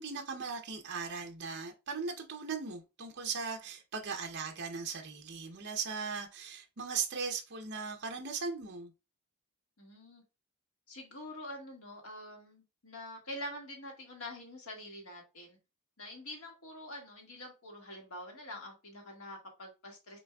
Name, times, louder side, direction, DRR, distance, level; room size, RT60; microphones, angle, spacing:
voice 1, 0.0-8.9, right 5 dB, 50° right, 0.7 m, -38 dB
voice 2, 9.8-10.2 10.9-15.6 16.0-20.2, left 1 dB, 70° left, 1.8 m, -46 dB
6.2 x 3.4 x 2.3 m
head